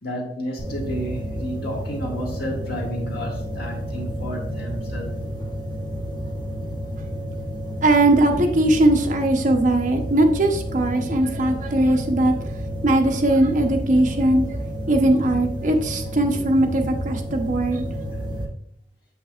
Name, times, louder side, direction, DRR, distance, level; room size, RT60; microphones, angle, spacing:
voice 1, 0.0-5.1, equal, 60° left, 1.7 m, -31 dB
sound 1, 0.6-18.4, equal, 25° left, 0.9 m, -30 dB
voice 2, 7.8-12.3 12.8-14.6 14.9-18.0, right 1 dB, 45° right, 0.8 m, -20 dB
7.1 x 5.8 x 2.4 m
head